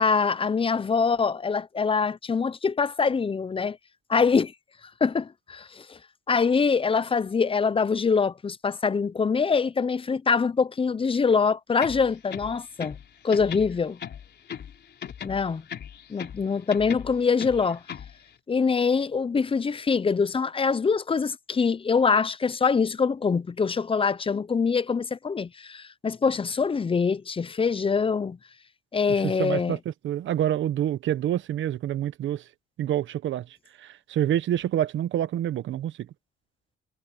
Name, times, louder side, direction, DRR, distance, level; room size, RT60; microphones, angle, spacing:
voice 1, 0.0-3.8 4.1-4.5 5.0-5.8 6.3-13.0 13.2-14.0 15.2-15.6 16.1-17.8 18.5-28.4 28.9-29.8, left 5 dB, 25° left, 0.7 m, -24 dB
sound 1, 11.7-13.1 13.3-14.7 15.0-16.4 16.7-18.1, left 8 dB, 60° left, 4.3 m, -38 dB
voice 2, 29.2-32.4 32.8-33.4 33.8-35.9, right 11 dB, 75° right, 1.0 m, -27 dB
cardioid pair, 90°, 20 cm